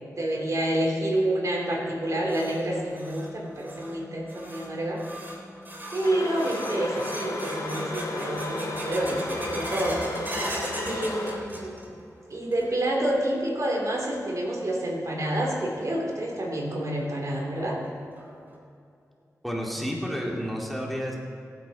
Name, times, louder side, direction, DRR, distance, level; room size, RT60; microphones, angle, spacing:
voice 1, 0.2-5.0 5.9-10.0 10.8-11.9 12.3-17.8, right 1 dB, 60° right, -1 dB, 3.2 m, -28 dB
sound 1, 1.9-12.0 12.3-12.9 13.3-13.4 14.1-14.2 15.9-16.0 16.4-16.5 17.0-17.1 17.6-17.7 18.2-18.6, right 1 dB, 30° right, 3.4 m, -39 dB
sound 2, 6.0-11.4, left 2 dB, 80° left, 3.1 m, -33 dB
voice 2, 19.4-21.2, equal, ahead, -2 dB, 2.5 m, -30 dB
23.0 x 9.2 x 4.2 m, 2.5 s
cardioid pair, 60°, 6 cm